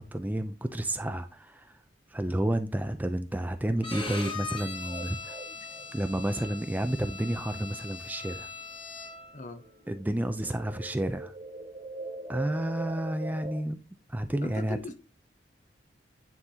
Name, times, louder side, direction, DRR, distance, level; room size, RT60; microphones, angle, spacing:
voice 1, 0.0-1.7 2.1-5.4 5.9-8.5 9.9-11.3 12.3-13.8 14.1-14.8, right 1 dB, 10° right, 0.4 m, -31 dB
Bowed string instrument, 3.8-9.4, left 4 dB, 30° left, 1.5 m, -40 dB
sound 1, 4.6-8.7 9.1-13.6, right 2 dB, 35° right, 1.5 m, -43 dB
voice 2, 14.4-15.0, left 3 dB, 45° left, 0.8 m, -39 dB
9.6 x 3.9 x 2.8 m
head